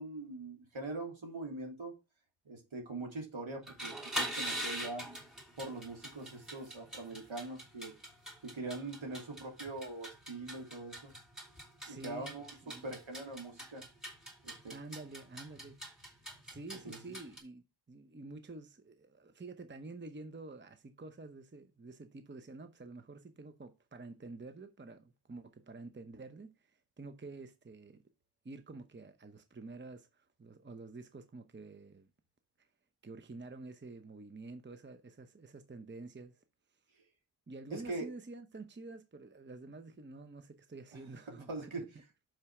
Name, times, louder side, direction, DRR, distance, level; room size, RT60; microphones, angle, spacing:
voice 1, 0.0-1.9 2.4-5.1 5.6-7.9 8.4-11.1 11.9-12.5 12.8-13.8 14.4-14.7 16.8-17.1 37.7-38.1 41.5-41.9, right 2 dB, 70° right, 3.0 m, -42 dB
sound 1, 3.6-17.4, right 1 dB, ahead, 3.1 m, -43 dB
voice 2, 11.8-12.9 14.7-15.8 16.4-28.0 28.4-32.1 32.6-32.7 33.0-36.4 36.7-36.8 37.5-41.9, right 3 dB, 25° right, 0.8 m, -49 dB
5.8 x 5.6 x 4.8 m
wide cardioid pair, 55°, 49 cm